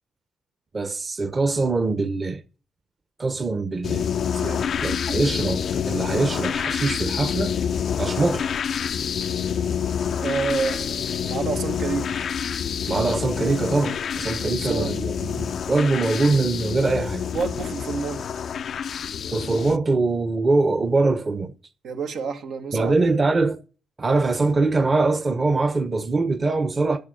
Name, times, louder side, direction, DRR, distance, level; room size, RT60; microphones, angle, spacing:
voice 1, 0.7-2.4 3.2-4.0 4.8-7.5 8.0-8.5 12.9-17.2 19.3-21.5 22.7-23.6 24.0-27.0, right 3 dB, 30° right, 1.2 m, -23 dB
sound 1, 3.8-19.8, left 7 dB, 55° left, 0.5 m, -27 dB
voice 2, 4.3-4.7 10.1-12.2 14.4-15.0 17.3-18.3 21.8-23.1, right 5 dB, 70° right, 1.6 m, -29 dB
10.5 x 6.8 x 8.0 m
cardioid pair, 90°, 0 cm